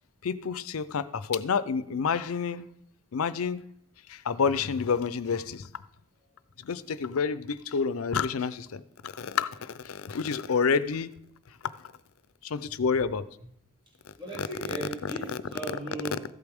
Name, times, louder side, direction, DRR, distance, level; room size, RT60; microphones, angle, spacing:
voice 1, 0.2-2.7 3.1-3.6 4.1-5.7 6.6-11.1 11.8-11.9 12.4-13.2 14.4-14.5 15.3-15.4, left 5 dB, 90° left, 15 dB, 0.5 m, -29 dB
voice 2, 14.2-16.2, right 2 dB, 25° right, -3 dB, 2.5 m, -37 dB
14.0 x 8.2 x 3.5 m, 0.72 s
head